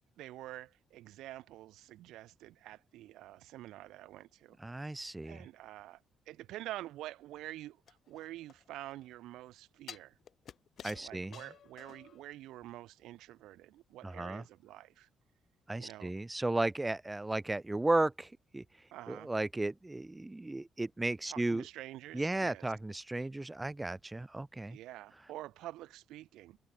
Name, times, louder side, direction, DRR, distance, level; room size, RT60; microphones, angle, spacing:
voice 1, 0.0-4.6 5.2-10.1 11.0-15.1 15.8-16.1 18.9-19.3 21.3-22.6 24.7-26.6, right 15 dB, 90° right, 1.3 m, -47 dB
voice 2, 4.6-5.4 10.8-11.4 14.0-14.4 15.7-18.6 19.1-21.6 22.1-24.8, right 2 dB, 15° right, 0.5 m, -34 dB
sound 1, 7.9-9.0 9.9-12.2 12.6-12.7, left 8 dB, 60° left, 5.1 m, -51 dB
cardioid pair, 90°, 0 cm